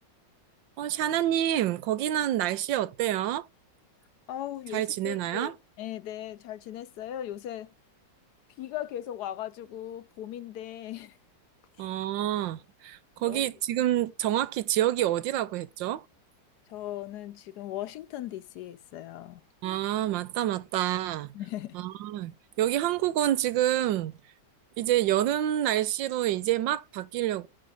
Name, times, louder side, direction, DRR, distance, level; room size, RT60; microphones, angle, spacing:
voice 1, 0.8-3.5 4.7-5.5 11.8-16.0 19.6-21.3 21.7-24.2 24.8-27.5, right 12 dB, 90° right, 1.4 m, -28 dB
voice 2, 4.3-7.7 8.6-11.1 13.2-13.4 16.7-19.4 21.3-21.8, left 12 dB, 70° left, 1.0 m, -38 dB
9.2 x 3.8 x 5.4 m
omnidirectional pair, 2.0 m